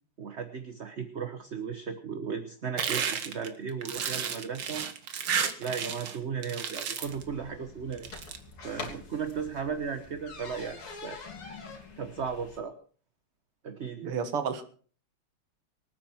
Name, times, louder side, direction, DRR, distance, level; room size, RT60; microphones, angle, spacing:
voice 1, 0.2-4.9 5.6-8.1 8.6-11.2 12.0-12.7 13.6-14.2, right 6 dB, 40° right, 8 dB, 1.1 m, -36 dB
sound 1, 2.8-6.2 6.4-7.2 7.9-8.4, right 7 dB, 60° right, 2.0 m, -32 dB
sound 2, 7.1-12.6, left 4 dB, 75° left, 3.7 m, -45 dB
voice 2, 14.0-14.6, right 6 dB, 85° right, 9 dB, 2.5 m, -31 dB
25.0 x 9.1 x 4.5 m, 0.43 s
omnidirectional pair, 2.4 m